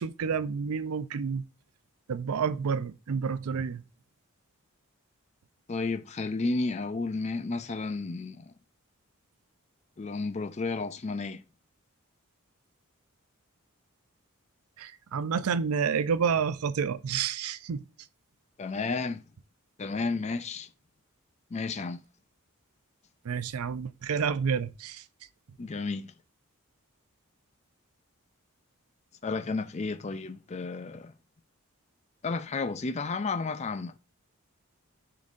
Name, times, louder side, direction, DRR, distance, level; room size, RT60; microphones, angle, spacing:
voice 1, 0.0-1.4 2.1-3.8 14.8-17.8 23.2-25.0, right 6 dB, 85° right, 0.4 m, -29 dB
voice 2, 5.7-8.5 10.0-11.4 18.6-19.2 19.8-20.7 21.5-22.0 25.6-26.1 29.2-31.1 32.2-34.0, left 3 dB, 30° left, 0.4 m, -32 dB
11.0 x 3.9 x 2.5 m
head